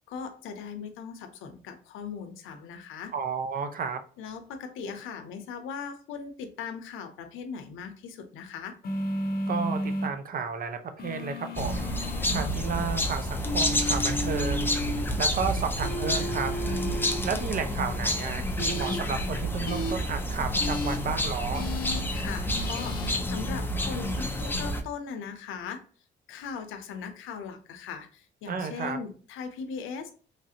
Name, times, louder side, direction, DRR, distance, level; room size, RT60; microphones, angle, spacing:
voice 1, 0.1-3.1 4.2-8.7 22.1-25.8 26.3-30.1, left 6 dB, 90° left, 7 dB, 0.6 m, -39 dB
voice 2, 3.1-4.0 9.5-11.9 12.3-14.7 15.2-16.5 17.2-21.7 28.5-29.0, right 6 dB, 45° right, 8 dB, 0.6 m, -32 dB
sound 1, 8.8-10.1 11.0-12.5 13.4-15.0 15.8-17.2 18.6-19.0 19.7-19.9 20.6-21.0 21.5-22.0 22.5-23.2, left 1 dB, 50° left, 0.7 m, -33 dB
sound 2, 11.6-24.8, equal, 10° left, 0.4 m, -29 dB
3.2 x 2.4 x 2.7 m, 0.42 s
cardioid pair, 90°, 20 cm